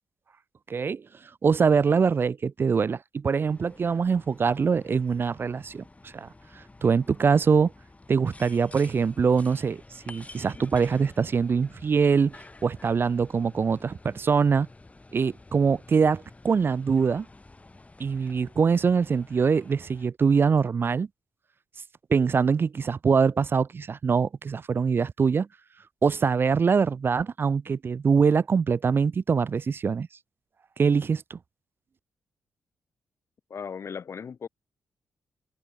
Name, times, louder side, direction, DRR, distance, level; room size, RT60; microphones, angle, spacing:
voice 1, 0.7-1.0 1.4-6.3 6.6-7.7 8.1-12.4 12.6-14.7 15.1-17.3 18.0-21.1 22.1-25.5 26.0-30.1 30.8-31.4, right 5 dB, 45° right, 0.4 m, -23 dB
sound 1, 3.5-20.1, left 2 dB, 25° left, 5.1 m, -50 dB
voice 2, 33.5-34.5, left 6 dB, 55° left, 3.5 m, -37 dB
hypercardioid pair, 45°, 5 cm